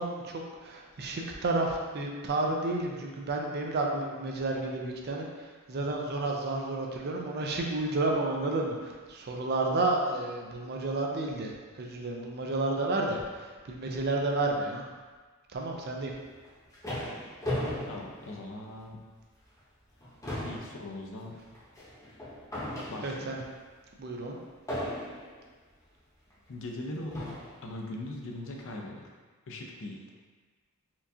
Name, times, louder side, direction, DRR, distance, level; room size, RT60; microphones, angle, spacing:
voice 1, 0.0-5.3 5.7-11.5 11.8-14.8 15.5-16.1 23.0-23.4 24.0-24.4, right 2 dB, 45° right, 0 dB, 0.5 m, -31 dB
sound 1, 16.3-19.0 19.4-19.6 19.9-23.4 24.7-25.4 26.3-26.4 27.1-27.6, left 1 dB, 15° left, 0.8 m, -37 dB
voice 2, 17.9-19.0 20.4-21.4 22.9-23.4 26.5-29.2 29.5-30.0, left 1 dB, 60° left, 0 dB, 0.5 m, -40 dB
4.4 x 2.4 x 2.7 m, 1.4 s
head